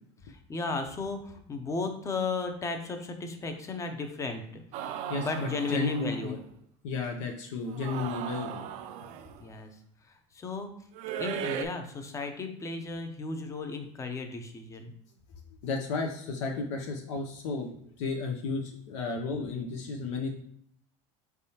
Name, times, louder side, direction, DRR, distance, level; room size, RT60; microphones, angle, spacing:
voice 1, 0.3-4.6 5.2-6.4 9.4-9.7 10.3-10.7 11.2-14.9, left 4 dB, 20° left, 6 dB, 0.5 m, -35 dB
sound 1, 4.7-6.3 7.7-9.4 11.0-11.7, right 9 dB, 55° right, 0.4 m, -37 dB
voice 2, 5.1-6.4 6.8-8.7 15.6-17.7 18.0-20.3, left 3 dB, 85° left, 2 dB, 0.6 m, -33 dB
4.5 x 3.4 x 2.8 m, 0.66 s
supercardioid pair, 130°, 15 cm